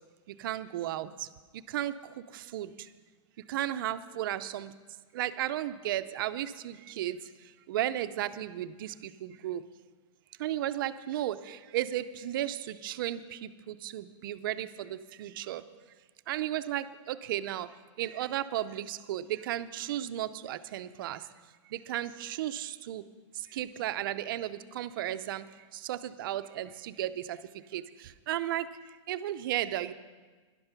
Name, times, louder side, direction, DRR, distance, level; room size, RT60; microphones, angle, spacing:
voice 1, 0.4-1.3 1.5-2.0 2.3-2.7 3.5-4.7 5.1-7.2 7.7-9.6 10.4-15.6 16.3-17.7 18.0-21.2 21.7-23.0 23.5-25.4 25.7-27.4 27.7-28.7 29.1-29.9, right 13 dB, 45° right, 12 dB, 0.5 m, -34 dB
12.5 x 11.5 x 5.8 m, 1.4 s
supercardioid pair, 175°, 16 cm